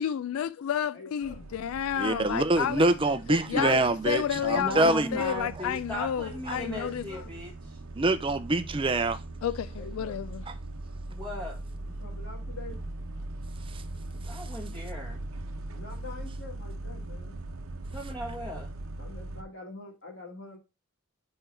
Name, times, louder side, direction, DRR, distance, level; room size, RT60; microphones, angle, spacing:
voice 1, 0.0-2.8 3.5-3.8 4.1-7.0 9.4-10.4, left 9 dB, 85° left, 0.3 m, -31 dB
voice 2, 0.9-1.4 3.0-3.9 6.5-7.2 9.8-10.2 12.0-12.8 15.8-17.4 19.0-20.6, left 4 dB, 60° left, 2.4 m, -41 dB
sound 1, 1.2-19.4, right 2 dB, 85° right, 0.8 m, -40 dB
voice 3, 2.0-5.4 6.5-6.6 7.9-9.2, right 2 dB, 25° right, 0.6 m, -25 dB
voice 4, 4.5-7.8 11.1-11.6 14.2-15.2 17.9-18.7, equal, 5° left, 1.6 m, -37 dB
4.5 x 4.4 x 5.3 m
head